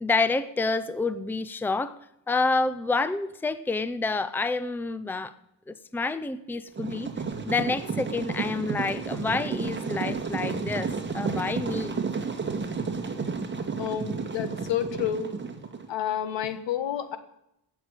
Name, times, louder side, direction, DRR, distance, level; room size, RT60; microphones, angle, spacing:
voice 1, 0.0-2.0 2.3-5.3 5.7-7.1 7.5-12.0, left 3 dB, 5° left, 14 dB, 0.6 m, -28 dB
sound 1, 6.8-15.9, right 5 dB, 25° right, 2.0 m, -32 dB
voice 2, 13.8-15.3 15.9-17.2, left 9 dB, 80° left, 11 dB, 1.6 m, -29 dB
16.5 x 6.6 x 9.0 m, 0.81 s
cardioid pair, 110°, 43 cm